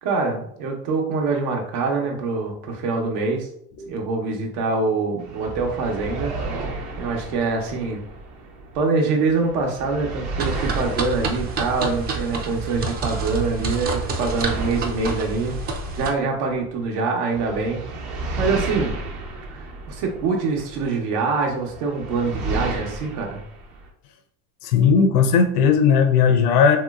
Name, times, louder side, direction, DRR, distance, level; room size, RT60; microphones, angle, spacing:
voice 1, 0.0-3.5 3.9-6.3 7.0-8.0 8.7-15.6 15.9-18.9 19.5-23.4, right 4 dB, 75° right, 2 dB, 1.0 m, -24 dB
sound 1, 5.2-8.9 9.2-12.9 13.2-16.9 17.3-20.9 21.4-23.9, right 2 dB, 55° right, 0.9 m, -33 dB
sound 2, 10.4-16.1, right 4 dB, 25° right, 0.4 m, -28 dB
voice 2, 24.6-26.8, left 6 dB, 90° left, 5 dB, 0.6 m, -17 dB
3.0 x 2.9 x 2.3 m, 0.68 s
supercardioid pair, 115°, 45 cm